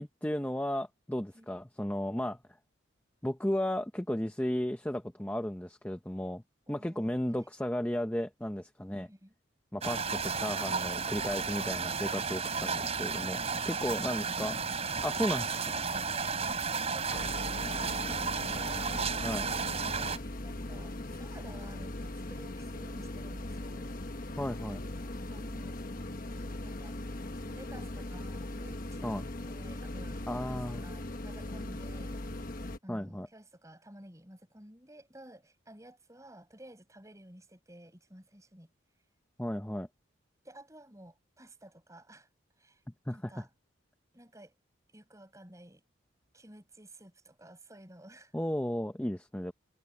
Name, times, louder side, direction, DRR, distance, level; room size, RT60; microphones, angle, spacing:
voice 1, 0.0-2.4 3.2-6.4 6.7-9.1 9.7-14.6 15.0-15.9 17.1-17.2 19.2-19.5 24.4-24.8 29.0-29.3 30.3-30.8 32.9-33.3 39.4-39.9 43.1-43.4 48.3-49.5, left 1 dB, 5° left, 0.7 m, -34 dB
voice 2, 1.3-1.6 6.7-7.4 8.9-9.3 16.1-23.9 25.3-25.8 26.3-27.0 27.4-29.1 29.4-32.2 32.8-38.7 40.4-42.3 42.6-42.8 43.1-43.5 44.1-44.5 44.9-45.8 46.3-48.3, right 1 dB, 15° right, 6.9 m, -53 dB
sound 1, 9.8-20.2, right 5 dB, 30° right, 4.3 m, -33 dB
Small Room Tone Vintage Air Condition AT, 17.1-32.8, left 1 dB, 45° left, 1.2 m, -39 dB
head